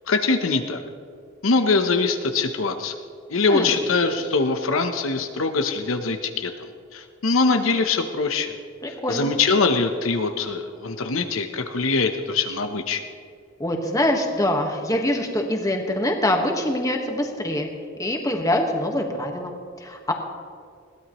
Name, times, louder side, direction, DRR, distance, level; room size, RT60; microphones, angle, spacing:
voice 1, 0.1-0.8 1.4-2.9 3.3-6.5 6.9-8.5 9.1-13.0, left 4 dB, 80° left, 6 dB, 0.9 m, -23 dB
voice 2, 8.8-9.3 13.6-17.7 18.0-20.1, left 1 dB, 15° left, 2 dB, 1.4 m, -24 dB
21.0 x 16.0 x 3.1 m, 2.2 s
head